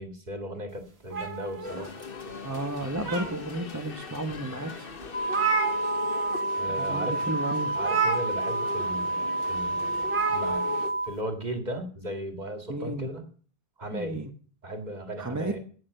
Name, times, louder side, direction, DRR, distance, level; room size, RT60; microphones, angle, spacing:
voice 1, 0.0-1.9 6.6-7.3 7.7-10.7 11.0-13.2 13.8-14.2 14.6-15.6, right 1 dB, 45° right, 5 dB, 2.2 m, -36 dB
sound 1, 1.1-2.3 2.8-3.7 4.3-4.4 4.7-4.8 5.0-6.4 6.7-6.9 7.8-8.8 10.0-10.9, right 4 dB, 90° right, 2.0 m, -30 dB
sound 2, 1.6-10.9, left 5 dB, 65° left, 1.4 m, -42 dB
voice 2, 2.4-4.9 6.8-7.8 12.7-13.1 13.9-14.3 15.2-15.5, right 1 dB, 15° right, 5 dB, 1.0 m, -32 dB
sound 3, 5.1-11.1, right 2 dB, 35° left, 1.8 m, -29 dB
17.0 x 6.8 x 6.6 m, 0.43 s
omnidirectional pair, 1.0 m